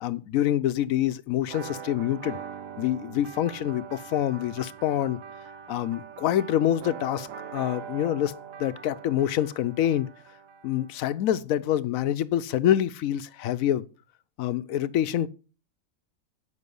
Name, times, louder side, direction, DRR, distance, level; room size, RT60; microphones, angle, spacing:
voice 1, 0.0-2.4 2.8-5.2 5.7-10.1 10.6-13.8 14.4-15.3, left 11 dB, 80° left, 1.0 m, -26 dB
sound 1, 1.4-11.0, right 7 dB, 75° right, 1.2 m, -42 dB
9.5 x 5.9 x 5.3 m
omnidirectional pair, 1.4 m